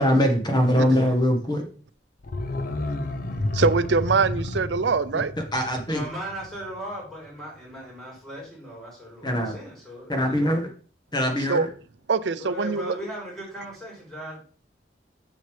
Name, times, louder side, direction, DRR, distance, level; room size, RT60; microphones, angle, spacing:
voice 1, 0.0-1.6 5.5-6.0 9.2-9.6 10.1-10.7 11.1-11.7, equal, 25° left, 3 dB, 1.3 m, -22 dB
voice 2, 0.7-1.1 5.9-10.6 12.4-14.4, equal, 5° left, -6 dB, 3.6 m, -37 dB
sound 1, 2.2-7.0 7.3-7.4, left 2 dB, 50° left, 0.7 m, -31 dB
voice 3, 3.5-5.3 11.5-11.7 12.1-13.0, right 4 dB, 70° right, 13 dB, 0.5 m, -24 dB
6.5 x 6.5 x 3.4 m, 0.41 s
head